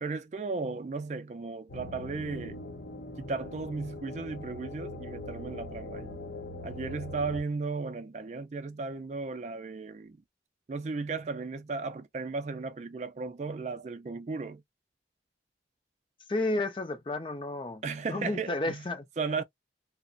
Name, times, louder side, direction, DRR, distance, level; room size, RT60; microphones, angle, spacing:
voice 1, 0.0-2.6 3.2-6.2 6.6-10.2 10.7-14.6 17.8-18.9 19.2-19.4, right 4 dB, 40° right, 0.3 m, -35 dB
sound 1, 1.7-7.4, left 1 dB, 70° left, 0.7 m, -41 dB
voice 2, 16.3-17.8 18.1-19.0, left 2 dB, 30° left, 0.4 m, -31 dB
2.9 x 2.0 x 2.4 m
head